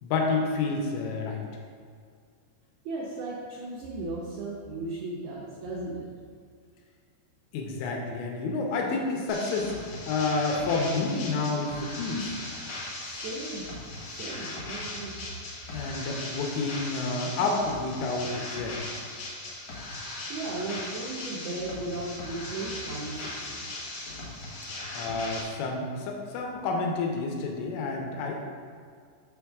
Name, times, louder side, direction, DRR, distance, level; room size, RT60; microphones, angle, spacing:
voice 1, 0.0-1.4 7.5-9.7 10.1-12.3 15.7-18.8 24.9-28.4, left 3 dB, 85° left, 0 dB, 3.2 m, -29 dB
voice 2, 2.9-6.1 13.0-13.7 14.0-15.1 20.3-23.8, right 2 dB, 90° right, -4 dB, 2.1 m, -36 dB
sound 1, 9.3-25.4, left 2 dB, 65° left, 1.9 m, -38 dB
7.8 x 3.5 x 6.2 m, 2.1 s
omnidirectional pair, 5.7 m